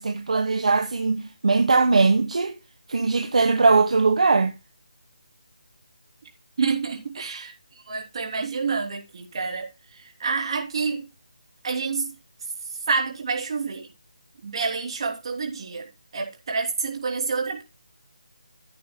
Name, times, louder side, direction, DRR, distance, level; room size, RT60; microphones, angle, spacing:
voice 1, 0.0-2.5 2.9-4.5, right 4 dB, 60° right, 1.3 m, -20 dB
voice 2, 6.6-11.1 11.6-12.1 12.9-13.9 14.4-17.6, right 4 dB, 45° right, 3.2 m, -28 dB
15.0 x 8.5 x 2.2 m
figure-of-eight pair, 160°, 4 cm